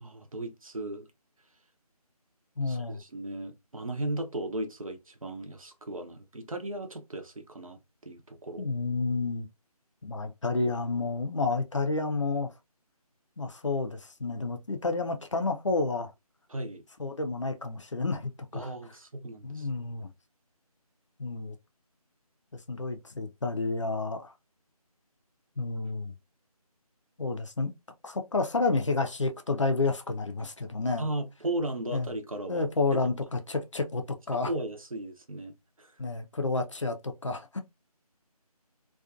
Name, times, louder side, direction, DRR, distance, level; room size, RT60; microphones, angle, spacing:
voice 1, 0.0-1.1 2.7-8.7 16.5-16.8 18.5-19.7 31.0-32.7 34.3-35.9, right 1 dB, 60° right, 0.7 m, -36 dB
voice 2, 2.6-3.0 8.6-9.5 10.0-12.5 13.4-16.1 17.0-18.7 19.4-20.1 21.2-21.6 22.7-24.3 25.6-26.1 27.2-27.7 28.0-31.1 31.9-32.1 32.5-34.5 36.0-37.6, left 3 dB, 50° left, 0.5 m, -30 dB
2.5 x 2.3 x 2.3 m
figure-of-eight pair, 160°, 20 cm